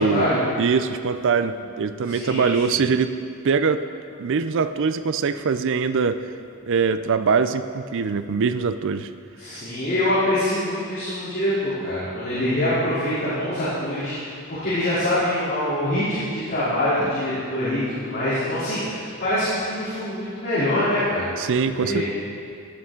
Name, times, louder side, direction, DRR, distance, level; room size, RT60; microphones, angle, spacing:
voice 1, 0.0-0.4 2.0-2.8 9.4-21.3 21.7-22.0, left 1 dB, 45° left, -13 dB, 3.2 m, -24 dB
voice 2, 0.6-3.1 3.4-3.9 4.2-6.2 6.6-9.1 21.4-22.0, right 5 dB, 60° right, 12 dB, 0.4 m, -22 dB
15.0 x 8.7 x 3.8 m, 2.4 s
head